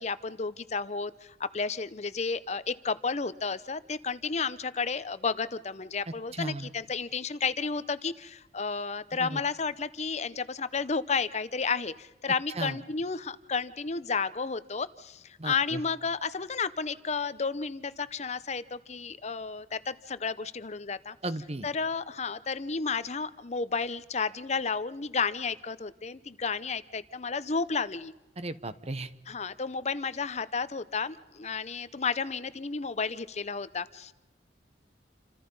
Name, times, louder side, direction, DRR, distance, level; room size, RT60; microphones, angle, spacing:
voice 1, 0.0-21.2 21.6-28.1 29.3-34.1, left 5 dB, 40° left, 14 dB, 0.8 m, -32 dB
voice 2, 6.3-6.7 9.2-9.4 12.6-12.8 15.4-15.8 21.2-21.7 28.4-29.1, right 2 dB, 35° right, 13 dB, 1.1 m, -35 dB
28.5 x 25.5 x 5.5 m, 1.0 s
head